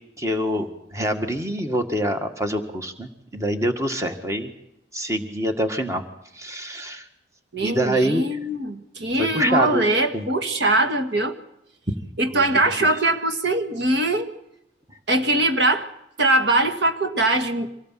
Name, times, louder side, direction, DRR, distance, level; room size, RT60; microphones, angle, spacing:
voice 1, 0.2-4.5 4.9-6.0 6.3-7.1 7.6-8.4 9.2-9.9 10.1-10.3 12.3-12.4 12.8-12.9, equal, 15° right, 5 dB, 1.8 m, -25 dB
voice 2, 7.5-11.4 12.2-14.3 15.1-15.9 16.2-17.7, right 2 dB, 65° right, 7 dB, 1.8 m, -21 dB
25.5 x 18.0 x 7.6 m, 0.84 s
head